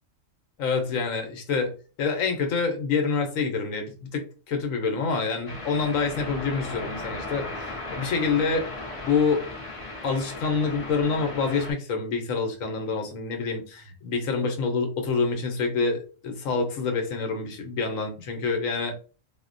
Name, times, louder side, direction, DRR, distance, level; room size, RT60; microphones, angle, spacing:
voice 1, 0.6-1.7 2.0-8.7 9.0-9.5 10.0-18.9, left 4 dB, 80° left, 4 dB, 1.1 m, -27 dB
sound 1, 5.5-11.7, left 2 dB, 30° left, 0.7 m, -36 dB
4.1 x 2.1 x 2.5 m, 0.36 s
omnidirectional pair, 1.4 m